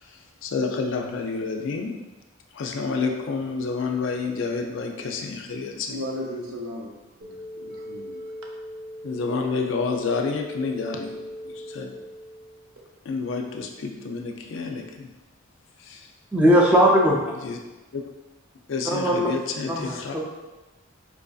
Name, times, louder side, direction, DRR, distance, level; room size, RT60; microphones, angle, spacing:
voice 1, 0.4-1.9 2.5-6.0 9.0-11.2 11.6-11.9 13.1-15.1 15.9-16.0 17.4-17.6 18.7-20.1, left 4 dB, 65° left, 3 dB, 0.4 m, -29 dB
voice 2, 5.9-6.9 7.2-8.3, left 1 dB, 80° right, 0 dB, 0.6 m, -35 dB
sound 1, 7.2-12.8, left 1 dB, 45° right, 0.8 m, -40 dB
voice 3, 16.3-17.2 18.8-19.3 19.7-20.2, equal, 5° right, -3 dB, 0.4 m, -19 dB
4.6 x 2.5 x 2.3 m, 1.1 s
head